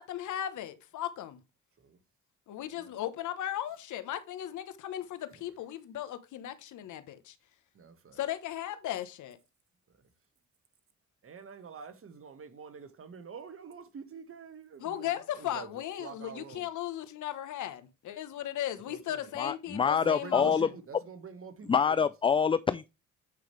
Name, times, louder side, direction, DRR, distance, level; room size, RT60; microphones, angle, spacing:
voice 1, 0.0-1.4 2.5-7.3 8.2-9.4 14.8-20.7, left 12 dB, 75° left, 1.1 m, -37 dB
voice 2, 7.7-8.2 11.2-16.7 18.9-19.3 19.8-22.1, right 6 dB, 45° right, 1.6 m, -47 dB
voice 3, 19.4-20.7 21.7-22.9, left 6 dB, 20° left, 0.3 m, -26 dB
8.8 x 5.1 x 3.3 m
cardioid pair, 90°, 30 cm